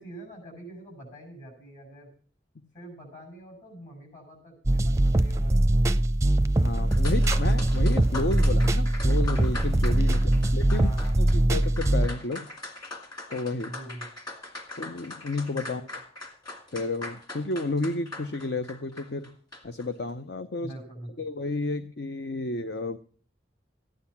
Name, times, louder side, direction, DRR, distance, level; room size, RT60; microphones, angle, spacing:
voice 1, 0.0-2.1 2.7-5.5 10.1-11.3 13.7-14.1 15.6-15.9 20.6-21.1, right 1 dB, 45° left, 3 dB, 7.6 m, -44 dB
sound 1, 4.7-12.1, right 1 dB, 15° right, 0.5 m, -22 dB
voice 2, 6.6-10.9 11.2-12.5 13.3-13.7 14.8-15.8 16.7-19.4 19.6-20.7 21.2-23.0, left 2 dB, 65° left, 10 dB, 0.7 m, -32 dB
sound 2, 6.9-19.9, left 2 dB, 25° left, 1.9 m, -41 dB
14.5 x 10.5 x 5.8 m, 0.42 s
head